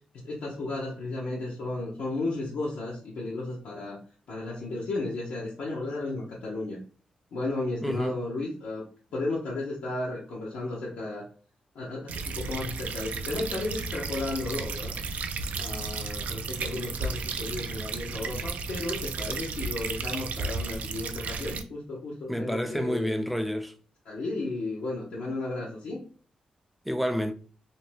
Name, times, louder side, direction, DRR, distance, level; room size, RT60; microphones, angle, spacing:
voice 1, 0.1-4.0 4.3-6.8 7.3-8.9 9.1-11.2 11.7-15.0 15.6-23.1 24.1-26.0, left 2 dB, 85° left, 0.8 m, -34 dB
voice 2, 7.8-8.2 16.7-16.8 22.3-23.7 26.9-27.3, equal, ahead, 0.4 m, -29 dB
sound 1, 12.1-21.6, right 4 dB, 70° right, 0.3 m, -33 dB
2.7 x 2.2 x 3.1 m
cardioid pair, 75°, 3 cm